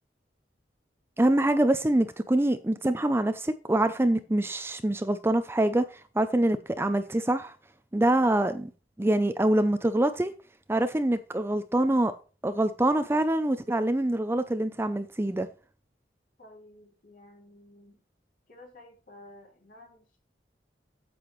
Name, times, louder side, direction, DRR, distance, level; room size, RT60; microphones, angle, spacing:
voice 1, 1.2-7.5 7.9-8.7 9.0-10.3 10.7-12.1 12.4-15.5, right 1 dB, 15° right, 0.5 m, -25 dB
voice 2, 16.4-18.0 18.5-20.2, left 1 dB, 50° left, 3.9 m, -52 dB
8.7 x 7.8 x 3.1 m
head